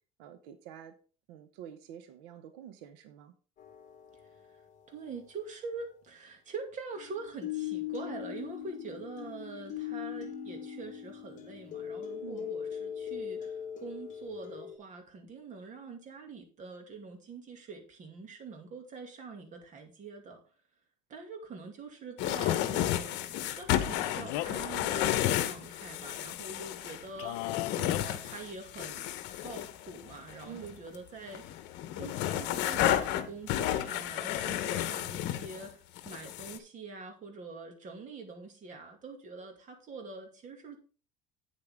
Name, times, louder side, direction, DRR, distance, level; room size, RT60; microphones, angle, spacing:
voice 1, 0.2-0.9 1.3-3.3 12.2-12.5 30.4-30.8, right 9 dB, 90° right, 10 dB, 1.0 m, -48 dB
sound 1, 3.6-4.4 7.0-14.8, left 9 dB, 35° left, 1.8 m, -40 dB
voice 2, 4.9-20.4 21.1-31.6 32.0-40.8, right 4 dB, 35° right, 4 dB, 2.3 m, -44 dB
sound 2, 22.2-31.0 31.3-35.7 36.0-36.6, left 12 dB, 60° left, 1.1 m, -32 dB
Male speech man speaking, 23.8-24.7 27.2-28.0, left 16 dB, 80° left, 0.7 m, -36 dB
8.7 x 8.2 x 3.6 m, 0.38 s
cardioid pair, 140°, 21 cm